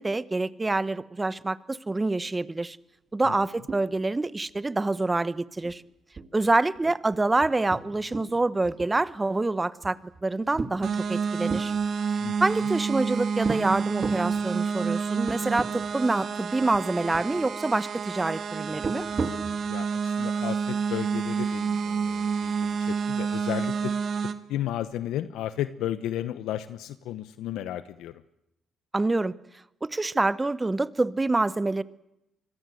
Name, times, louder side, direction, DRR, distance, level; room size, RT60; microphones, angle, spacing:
voice 1, 0.0-2.8 3.1-5.8 6.3-11.7 12.4-19.0 28.9-29.3 29.8-31.8, right 2 dB, 20° right, 17 dB, 1.1 m, -26 dB
sound 1, 3.7-4.2 4.5-4.6 5.0-5.2 5.6-5.8 6.2-8.3 8.6-9.3 9.8-11.7 12.4-13.0 13.4-13.6 14.0-14.3 14.9-15.0 15.3-15.7 16.0-16.1 16.7-17.3 18.7-19.6, right 4 dB, 35° right, 2.9 m, -35 dB
sound 2, 10.8-24.3, right 6 dB, 60° right, 2.0 m, -29 dB
voice 2, 19.6-23.9 24.5-28.2, left 12 dB, 90° left, 13 dB, 1.0 m, -33 dB
25.0 x 22.0 x 7.9 m, 0.85 s
cardioid pair, 90°, 0 cm